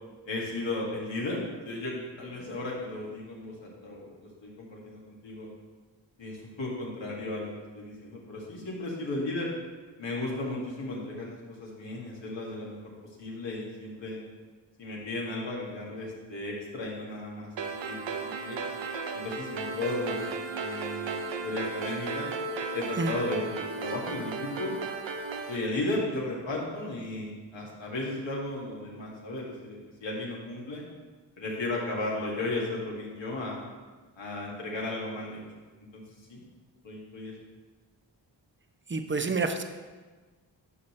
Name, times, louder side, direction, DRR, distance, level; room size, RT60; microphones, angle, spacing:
voice 1, 0.3-5.5 6.2-9.5 10.0-12.9 13.2-14.2 14.8-17.5 17.9-18.6 19.1-22.3 22.7-24.7 25.5-30.8 31.4-33.6 34.2-35.4 35.9-36.0 36.3-36.4 36.8-37.3, left 2 dB, 75° left, -4 dB, 2.1 m, -35 dB
sound 1, 17.6-25.6, right 4 dB, 75° right, 0.8 m, -35 dB
voice 2, 38.9-39.6, right 3 dB, 25° right, 7 dB, 0.8 m, -28 dB
10.5 x 5.8 x 3.3 m, 1.3 s
cardioid pair, 45°, 45 cm